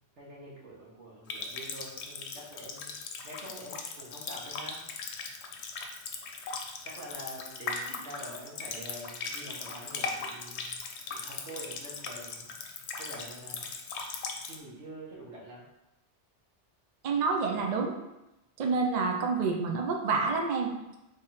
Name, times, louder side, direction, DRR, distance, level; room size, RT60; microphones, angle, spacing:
voice 1, 0.0-3.0 3.2-4.8 6.8-10.8 11.1-12.7 13.0-13.7 14.4-15.6, right 1 dB, 80° right, -4 dB, 1.5 m, -46 dB
Water tap faucet, 1.3-14.6, left 4 dB, 75° left, 0.9 m, -39 dB
voice 2, 17.0-18.0 18.6-21.0, right 4 dB, 50° right, 2 dB, 0.5 m, -28 dB
3.5 x 3.4 x 4.2 m, 0.95 s
omnidirectional pair, 1.2 m